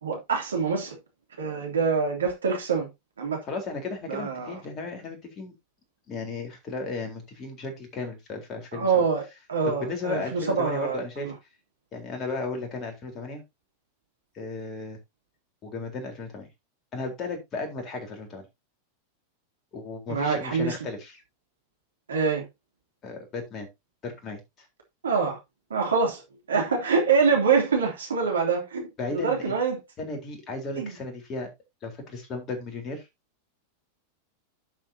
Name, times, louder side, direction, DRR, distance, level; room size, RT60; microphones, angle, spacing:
voice 1, 0.0-1.0 1.4-2.9 3.2-3.4 4.1-4.5 8.7-9.2 9.5-11.3 20.1-20.7 22.1-22.4 25.0-25.4 25.7-26.2 26.5-29.8 30.7-31.0, right 5 dB, 70° right, 3.0 m, -25 dB
voice 2, 3.4-5.5 6.1-9.0 9.6-11.3 11.9-13.4 14.3-15.0 15.6-16.5 16.9-18.5 19.7-21.2 23.0-23.7 24.0-24.7 29.0-29.6 30.0-31.5 31.8-33.1, left 3 dB, 30° left, 3.9 m, -35 dB
11.5 x 7.4 x 2.8 m
figure-of-eight pair, 90°, 0 cm